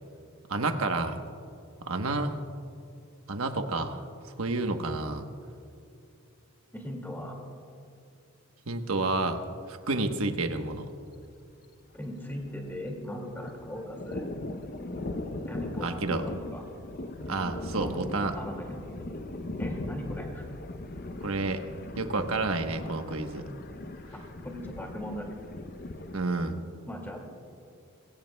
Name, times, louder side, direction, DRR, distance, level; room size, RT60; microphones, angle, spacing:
voice 1, 0.5-1.2 1.8-2.4 3.3-4.0 4.4-5.3 8.7-9.4 9.7-10.9 15.8-16.2 17.3-18.3 21.2-21.6 22.0-23.5 26.1-26.5, right 3 dB, 85° right, 6 dB, 1.1 m, -30 dB
voice 2, 6.7-7.4 11.9-14.2 15.5-16.6 17.8-18.9 19.6-20.5 24.1-25.4 26.9-27.3, equal, 10° left, 1 dB, 2.2 m, -39 dB
Thunder, 10.6-10.7 11.0-11.1 11.4-12.9 13.2-26.2, left 2 dB, 45° left, 0.6 m, -39 dB
22.0 x 17.0 x 2.3 m, 2.6 s
head